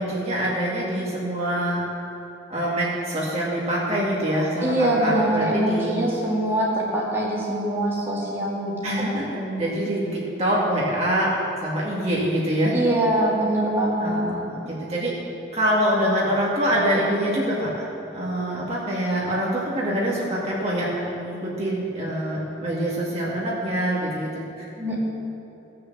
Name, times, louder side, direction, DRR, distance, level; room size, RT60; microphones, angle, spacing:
voice 1, 0.0-1.8 2.5-6.0 8.8-9.3 9.6-11.4 11.6-12.7 14.0-15.1 15.5-17.9 18.1-24.3, right 1 dB, 35° right, -6 dB, 2.2 m, -25 dB
voice 2, 4.6-9.6 12.7-14.2 24.8-25.0, right 1 dB, 15° right, -6 dB, 2.3 m, -24 dB
17.0 x 6.8 x 7.3 m, 3.0 s
head